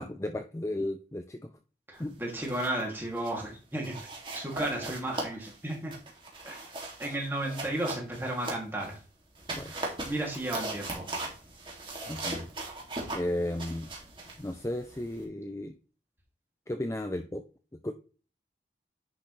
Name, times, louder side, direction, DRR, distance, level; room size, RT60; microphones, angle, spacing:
voice 1, 0.0-1.5 2.0-2.2 9.5-9.7 12.1-12.5 13.1-13.9 14.4-15.7 16.7-17.4 17.8-17.9, left 1 dB, 15° left, 7 dB, 0.5 m, -34 dB
voice 2, 1.9-4.0 4.3-5.9 6.4-6.6 7.0-9.0 10.0-11.1, right 1 dB, 15° right, -1 dB, 2.6 m, -33 dB
sound 1, 2.2-2.9 3.2-3.4 3.8-8.9 9.3-15.2, right 2 dB, 30° right, 2.4 m, -39 dB
10.0 x 6.3 x 3.3 m, 0.36 s
head